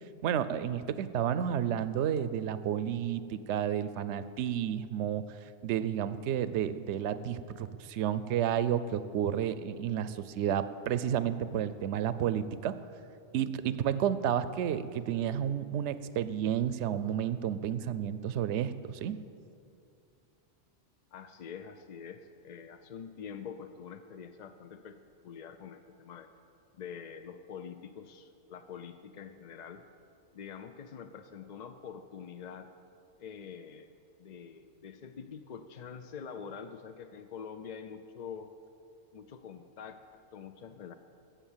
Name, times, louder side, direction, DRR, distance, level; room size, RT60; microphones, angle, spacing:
voice 1, 0.2-5.2 5.6-12.8 13.3-19.2, right 9 dB, 75° right, 13 dB, 0.9 m, -31 dB
voice 2, 21.1-26.3 26.8-29.8 30.3-32.7 33.2-33.9 34.2-38.5 39.1-40.9, left 7 dB, 55° left, 8 dB, 0.5 m, -45 dB
16.5 x 6.9 x 7.3 m, 2.5 s
omnidirectional pair, 1.2 m